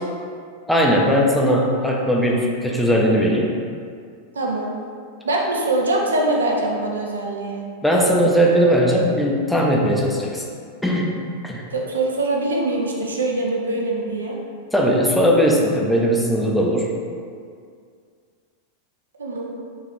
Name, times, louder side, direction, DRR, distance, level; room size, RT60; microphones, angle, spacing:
voice 1, 0.7-3.5 7.8-10.4 10.8-11.6 14.7-16.9, equal, ahead, -2 dB, 0.4 m, -18 dB
voice 2, 4.3-4.7 5.2-7.6 11.7-14.4 19.2-19.5, right 2 dB, 70° right, 0 dB, 0.5 m, -23 dB
3.9 x 2.4 x 3.1 m, 2.2 s
figure-of-eight pair, 90°, 0 cm